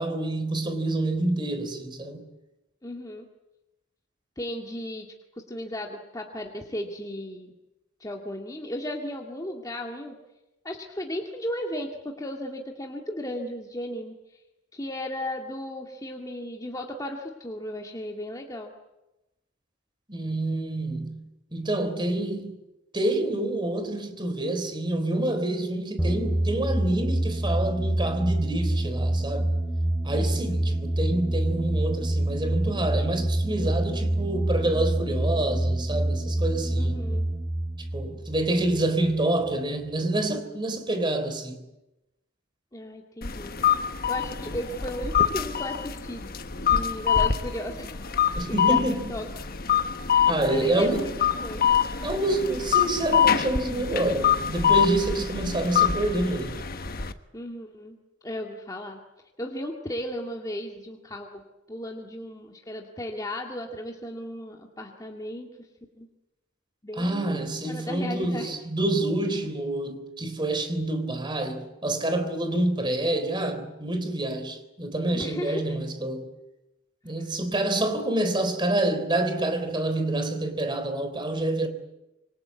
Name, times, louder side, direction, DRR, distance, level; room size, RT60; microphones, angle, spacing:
voice 1, 0.0-2.3 20.1-21.2 21.5-22.6 22.9-29.5 30.0-37.0 37.9-41.6 48.4-49.0 50.3-51.1 52.0-56.6 66.9-76.3 77.0-81.7, right 1 dB, 25° right, 3.7 m, -27 dB
voice 2, 2.8-3.3 4.4-5.1 5.5-7.5 8.0-10.2 10.6-14.1 14.7-18.7 30.5-30.8 36.8-37.3 42.7-43.6 44.1-47.9 48.3-49.5 50.1-51.1 51.4-51.6 57.3-58.0 58.2-59.0 59.4-61.4 61.7-65.7 66.0-66.1 66.8-68.5 75.1-75.7 77.2-77.3, left 1 dB, 20° left, 2.2 m, -35 dB
sound 1, 26.0-39.2, right 1 dB, ahead, 3.2 m, -27 dB
sound 2, 43.2-57.1, left 8 dB, 50° left, 1.2 m, -25 dB
27.0 x 24.0 x 8.4 m
head